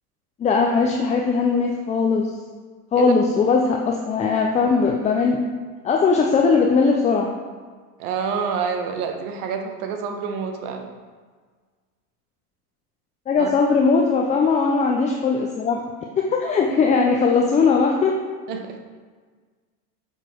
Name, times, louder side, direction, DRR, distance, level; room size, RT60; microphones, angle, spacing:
voice 1, 0.4-2.3 2.9-5.5 5.8-7.3 13.3-15.8 16.2-18.1, left 4 dB, 15° left, 1 dB, 0.4 m, -19 dB
voice 2, 8.0-10.9 13.4-13.5 16.7-16.8 18.5-18.8, right 6 dB, 70° right, 4 dB, 1.3 m, -27 dB
6.7 x 6.2 x 4.4 m, 1.5 s
supercardioid pair, 120°, 46 cm